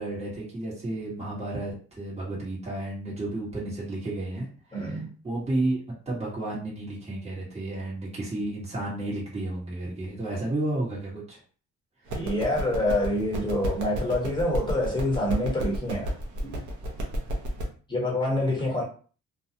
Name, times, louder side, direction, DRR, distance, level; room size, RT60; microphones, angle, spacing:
voice 1, 0.0-5.8 6.0-11.4 12.1-12.2, right 2 dB, 20° right, -6 dB, 1.3 m, -32 dB
voice 2, 4.7-5.1 12.1-16.1 16.4-16.6 17.9-18.8, left 1 dB, 15° left, -1 dB, 1.1 m, -26 dB
sound 1, 12.1-17.6, equal, 80° right, 0.9 m, -32 dB
2.4 x 2.3 x 2.8 m, 0.40 s
cardioid pair, 105°, 30 cm